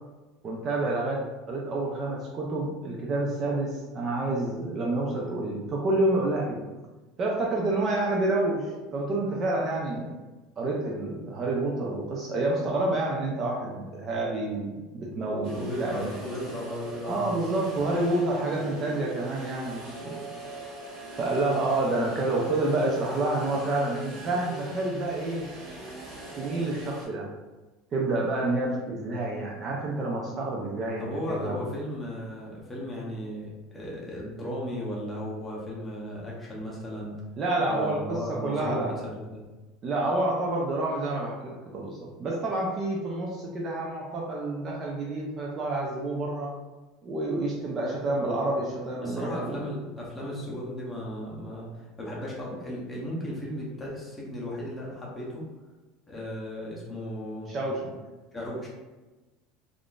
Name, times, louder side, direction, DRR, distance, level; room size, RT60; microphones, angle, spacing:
voice 1, 0.4-1.2 1.5-6.6 7.2-10.1 10.6-16.1 17.0-20.2 21.1-25.5 26.4-27.3 27.9-31.7 37.4-38.9 39.8-46.5 47.0-49.6 57.5-58.0, right 2 dB, 25° right, -2 dB, 0.4 m, -28 dB
sound 1, 15.4-27.1, right 2 dB, 45° right, 1.4 m, -41 dB
voice 2, 15.5-17.3 31.0-37.1 37.7-38.8 39.3-39.5 48.2-48.4 49.0-55.4 56.1-57.5 58.3-58.7, left 1 dB, 10° left, -5 dB, 0.7 m, -36 dB
3.5 x 2.4 x 2.3 m, 1.2 s
cardioid pair, 170°, 0 cm